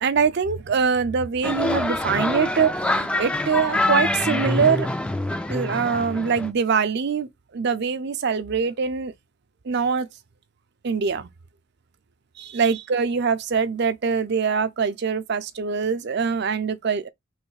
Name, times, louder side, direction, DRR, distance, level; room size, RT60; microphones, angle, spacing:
voice 1, 0.0-4.9 5.5-9.1 9.6-10.1 10.8-11.3 12.4-17.1, right 5 dB, 50° right, 0.5 m, -23 dB
sound 1, 1.4-6.5, left 1 dB, 5° left, 0.3 m, -25 dB
3.2 x 3.1 x 4.7 m
head